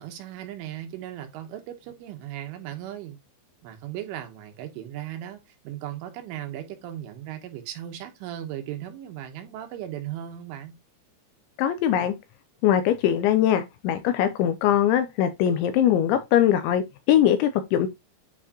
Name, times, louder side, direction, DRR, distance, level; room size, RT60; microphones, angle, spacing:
voice 1, 0.0-3.2 3.6-10.8, right 12 dB, 75° right, 3.5 m, -37 dB
voice 2, 11.6-12.1 12.6-17.9, left 10 dB, 80° left, 2.8 m, -21 dB
9.3 x 4.7 x 2.9 m
omnidirectional pair, 5.8 m